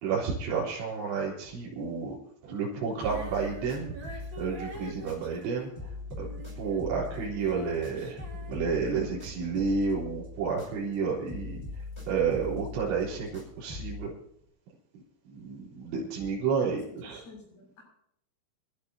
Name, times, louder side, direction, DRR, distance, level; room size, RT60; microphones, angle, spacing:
voice 1, 0.0-2.2 2.4-6.3 6.5-14.1 15.3-17.2, right 5 dB, 70° right, -6 dB, 5.9 m, -31 dB
Female singing, 2.9-9.3 10.0-10.1, right 1 dB, 40° right, 1.8 m, -45 dB
sound 1, 3.0-5.5 5.7-11.0 11.3-14.1, left 3 dB, 5° left, 4.6 m, -42 dB
voice 2, 16.7-17.8, left 3 dB, 65° left, 0 dB, 8.5 m, -51 dB
27.0 x 12.0 x 2.8 m, 0.72 s
omnidirectional pair, 5.6 m